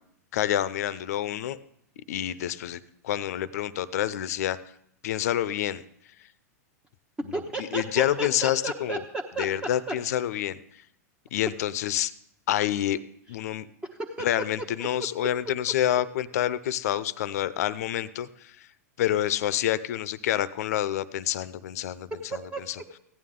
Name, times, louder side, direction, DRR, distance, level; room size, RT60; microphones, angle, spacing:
voice 1, 0.3-1.6 2.1-4.6 5.0-5.8 7.7-9.0 9.4-10.6 11.3-12.1 12.5-13.0 13.3-13.7 14.2-18.5 19.0-22.1 22.7-22.8, left 12 dB, 70° left, 17 dB, 0.6 m, -27 dB
voice 2, 7.3-9.5 9.9-10.0 13.9-14.3 14.8-14.9 22.3-22.8, right 2 dB, 10° right, 1 dB, 0.9 m, -33 dB
15.5 x 9.4 x 3.7 m, 0.72 s
hypercardioid pair, 115°, 9 cm